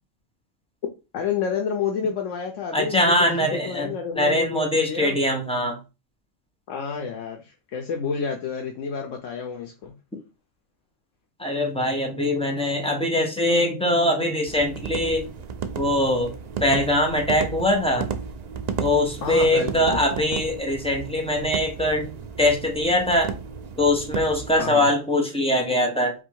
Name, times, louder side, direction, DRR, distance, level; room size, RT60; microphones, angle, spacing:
voice 1, 1.1-5.2 6.7-9.9 19.2-20.0 24.6-24.9, left 6 dB, 75° left, 3 dB, 1.0 m, -30 dB
voice 2, 2.7-5.8 11.4-15.3 15.8-16.3 16.6-18.1 18.8-23.3 23.8-26.1, left 1 dB, 5° left, 1 dB, 0.8 m, -22 dB
sound 1, 14.5-24.6, right 6 dB, 70° right, 0.4 m, -34 dB
4.0 x 2.6 x 4.5 m, 0.29 s
omnidirectional pair, 1.3 m